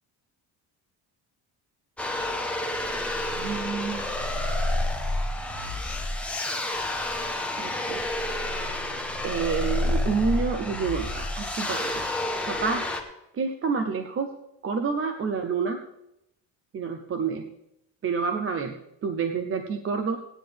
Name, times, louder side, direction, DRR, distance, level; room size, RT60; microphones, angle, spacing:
sound 1, 2.0-13.0, left 1 dB, 5° left, 0.9 m, -29 dB
voice 1, 3.3-4.0 7.6-8.0 9.2-11.9 12.5-12.8 13.3-14.3 14.6-15.8 16.7-17.5 18.0-18.8 19.0-20.2, right 5 dB, 30° right, 6 dB, 0.6 m, -28 dB
17.5 x 9.8 x 3.4 m, 0.82 s
cardioid pair, 170°, 43 cm